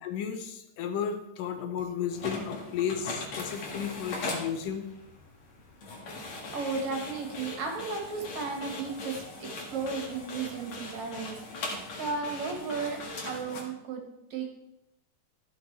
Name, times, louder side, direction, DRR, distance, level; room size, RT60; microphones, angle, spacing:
voice 1, 0.0-4.9, left 8 dB, 70° left, 7 dB, 2.3 m, -33 dB
sound 1, 2.1-13.6, left 2 dB, 55° left, 2.8 m, -40 dB
voice 2, 6.2-13.0 13.3-14.0 14.3-14.5, right 4 dB, 55° right, 2 dB, 2.5 m, -35 dB
14.0 x 6.6 x 4.6 m, 0.84 s
omnidirectional pair, 4.3 m